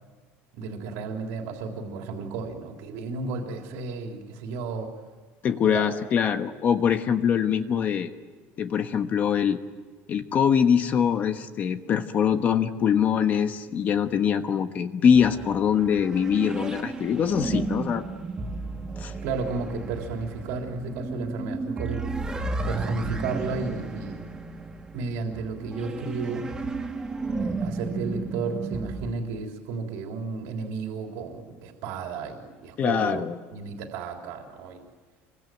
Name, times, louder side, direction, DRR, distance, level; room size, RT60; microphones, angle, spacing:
voice 1, 0.5-4.9 5.6-5.9 19.2-22.0 22.7-24.3 24.9-26.5 27.4-33.2 33.5-34.9, right 4 dB, 75° right, 2 dB, 3.5 m, -33 dB
voice 2, 5.4-8.1 8.6-9.6 10.1-18.0 19.0-19.1 32.8-33.3, left 8 dB, 30° left, 8 dB, 1.3 m, -23 dB
sound 1, 15.1-29.1, right 3 dB, 10° right, 1.9 m, -33 dB
27.5 x 23.5 x 9.2 m, 1.5 s
cardioid pair, 170°, 5 cm